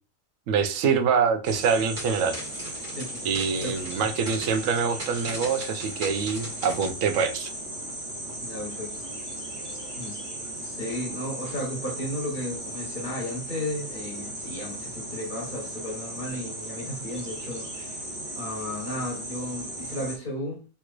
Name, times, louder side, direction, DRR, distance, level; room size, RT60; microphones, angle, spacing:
voice 1, 0.5-2.4 3.2-7.5, right 6 dB, 75° right, 1.0 m, -25 dB
sound 1, 1.4-20.2, right 1 dB, 15° right, 0.9 m, -37 dB
sound 2, 1.5-6.9, right 1 dB, 35° right, 1.5 m, -40 dB
voice 2, 2.9-3.3 3.6-4.1 8.4-9.1 9.6-10.2 10.6-20.6, left 1 dB, 40° left, 1.3 m, -34 dB
3.5 x 3.0 x 2.4 m
omnidirectional pair, 1.4 m